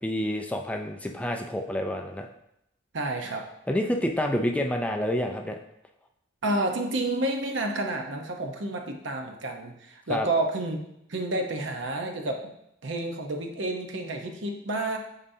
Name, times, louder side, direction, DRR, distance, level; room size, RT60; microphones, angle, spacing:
voice 1, 0.0-2.3 3.7-5.6 10.1-10.3, left 1 dB, 5° left, 3 dB, 0.4 m, -28 dB
voice 2, 2.9-3.4 6.4-10.8 11.1-12.4 12.8-15.0, right 2 dB, 65° right, 3 dB, 0.8 m, -30 dB
8.8 x 4.2 x 2.7 m, 0.78 s
head